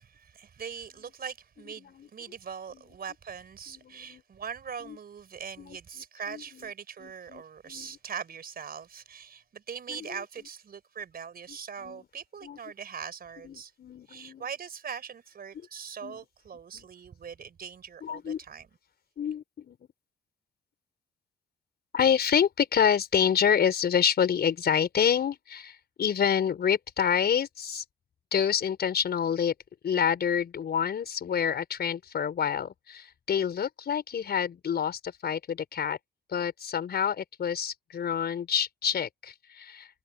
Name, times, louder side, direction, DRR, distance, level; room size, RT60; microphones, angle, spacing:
voice 1, 0.0-13.7 14.1-18.7, right 7 dB, 50° right, 4.1 m, -41 dB
voice 2, 3.7-4.2 4.8-5.0 5.6-5.8 6.3-6.7 7.0-8.0 9.9-10.1 11.5-12.0 12.4-12.6 13.4-14.4 16.0-16.2 16.7-16.9 18.0-18.4 19.2-19.8 21.9-27.8 28.3-29.5 29.8-36.0 36.3-39.9, left 8 dB, 55° left, 5.0 m, -28 dB
hypercardioid pair, 50°, 20 cm